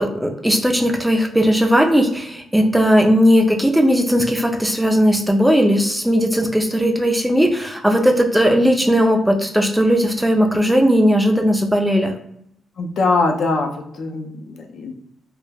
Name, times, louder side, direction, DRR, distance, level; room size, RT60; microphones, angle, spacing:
voice 1, 0.0-12.1, equal, 5° right, 3 dB, 0.3 m, -17 dB
voice 2, 12.8-14.9, left 3 dB, 65° left, 3 dB, 0.4 m, -22 dB
2.2 x 2.0 x 3.2 m, 0.72 s
cardioid pair, 135°, 0 cm